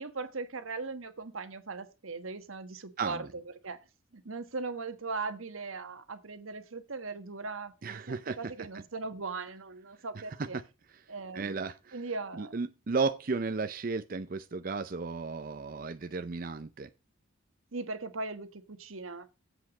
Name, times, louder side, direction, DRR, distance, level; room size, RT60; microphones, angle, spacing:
voice 1, 0.0-3.8 4.1-10.6 11.1-11.6 11.9-12.6 17.7-19.3, right 3 dB, 90° right, 1.3 m, -39 dB
voice 2, 3.0-3.3 7.8-8.7 10.4-10.6 11.3-12.0 12.3-16.9, right 4 dB, 45° right, 0.5 m, -34 dB
8.1 x 5.0 x 7.0 m
head